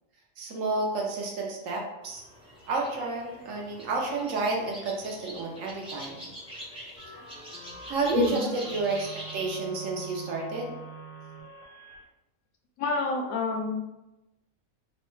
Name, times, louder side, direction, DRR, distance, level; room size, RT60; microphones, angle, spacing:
voice 1, 0.4-2.2 2.7-6.3 7.9-10.7, right 3 dB, 70° right, -1 dB, 1.0 m, -30 dB
sound 1, 2.0-9.5, equal, 5° right, 0.6 m, -44 dB
sound 2, 7.0-12.0, right 4 dB, 45° left, 0.4 m, -45 dB
voice 2, 12.8-14.0, left 3 dB, 85° left, 2 dB, 1.0 m, -28 dB
3.1 x 2.1 x 3.0 m, 0.95 s
omnidirectional pair, 1.4 m